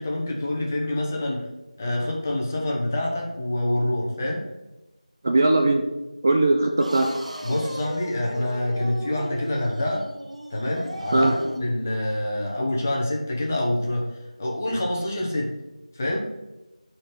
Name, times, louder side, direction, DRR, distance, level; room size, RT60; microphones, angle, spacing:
voice 1, 0.0-1.5 1.8-4.4 7.4-10.0 10.5-14.1 14.4-15.5 15.9-16.2, left 1 dB, 20° left, -1 dB, 1.2 m, -26 dB
voice 2, 5.2-5.8 6.2-7.1 11.1-11.4, right 2 dB, 25° right, 3 dB, 0.5 m, -19 dB
sound 1, 6.8-11.7, equal, 70° right, 1.6 m, -36 dB
8.6 x 4.4 x 5.9 m, 1.0 s
figure-of-eight pair, 170°, 4 cm